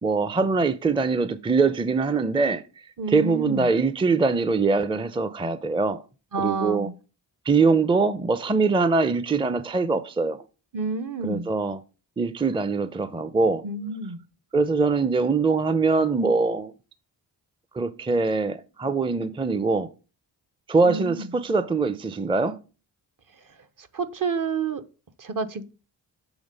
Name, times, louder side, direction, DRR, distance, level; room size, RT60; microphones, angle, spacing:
voice 1, 0.0-2.6 3.1-6.0 6.4-6.9 7.5-10.4 11.2-11.8 12.2-13.6 14.5-16.7 17.7-19.9 20.7-22.6, right 4 dB, 10° right, 0.5 m, -23 dB
voice 2, 3.0-3.7 6.3-6.9 10.7-11.5 13.6-14.2 20.8-21.3 23.8-24.8 25.2-25.7, right 4 dB, 45° right, 0.8 m, -29 dB
7.1 x 3.3 x 5.3 m
cardioid pair, 50°, 44 cm